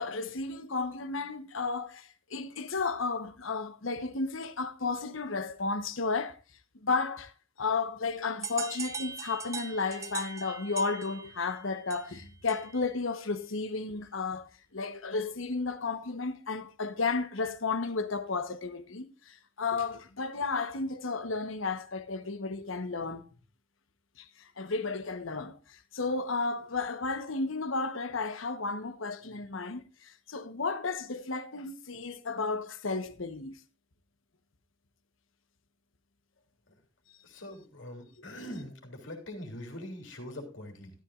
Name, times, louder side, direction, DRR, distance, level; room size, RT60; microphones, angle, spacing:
voice 1, 0.0-6.4 6.7-7.3 7.6-23.2 24.2-33.6, left 4 dB, 85° left, 1.1 m, -33 dB
sound 1, 8.4-12.9, right 5 dB, 15° right, 0.6 m, -41 dB
voice 2, 37.2-40.9, left 1 dB, 70° left, 3.3 m, -43 dB
13.0 x 13.0 x 2.5 m
head